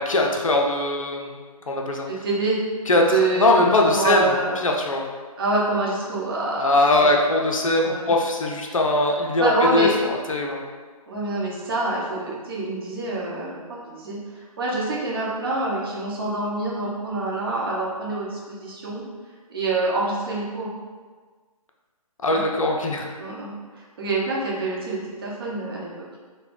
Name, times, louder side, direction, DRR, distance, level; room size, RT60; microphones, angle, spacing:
voice 1, 0.0-1.4 1.7-2.1 2.9-5.1 6.6-10.6 22.2-23.1, left 2 dB, 60° left, 1 dB, 0.5 m, -21 dB
voice 2, 2.1-2.6 2.9-4.6 5.4-7.1 7.8-8.1 9.4-10.0 11.1-19.0 19.5-20.7 22.3-22.4 23.2-26.1, right 2 dB, 40° right, -5 dB, 0.8 m, -26 dB
4.1 x 2.1 x 3.2 m, 1.5 s
figure-of-eight pair, 140°, 19 cm